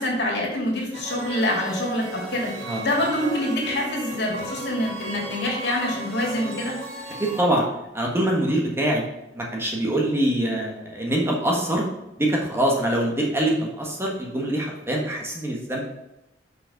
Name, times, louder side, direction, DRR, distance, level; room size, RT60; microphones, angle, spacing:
voice 1, 0.0-2.5 2.8-6.8, left 1 dB, 65° left, -1 dB, 2.7 m, -26 dB
sound 1, 0.9-7.4, right 2 dB, 40° right, 2.4 m, -35 dB
voice 2, 7.2-7.7 7.9-9.0 9.3-11.8 12.2-15.8, right 1 dB, 15° right, -1 dB, 1.4 m, -24 dB
7.0 x 5.5 x 5.2 m, 0.90 s
head